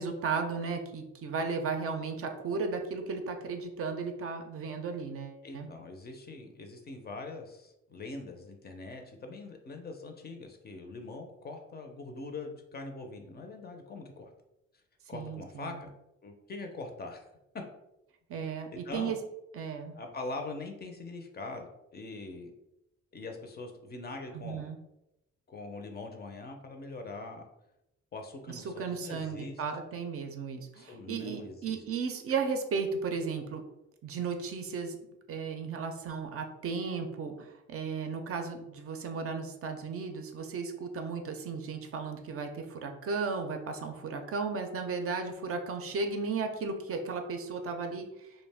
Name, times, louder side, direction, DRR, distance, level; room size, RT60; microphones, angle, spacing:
voice 1, 0.0-5.7 15.1-15.8 18.3-19.2 19.5-20.0 24.3-24.8 28.5-33.6 34.0-35.0 35.3-48.3, right 5 dB, 50° right, 5 dB, 0.4 m, -35 dB
voice 2, 5.4-14.3 15.1-15.9 16.2-17.3 18.7-19.1 19.9-22.5 23.1-24.7 25.5-27.5 28.1-29.6 30.7-31.8, left 3 dB, 35° left, 4 dB, 0.5 m, -42 dB
2.4 x 2.1 x 3.3 m, 0.87 s
cardioid pair, 90°, 30 cm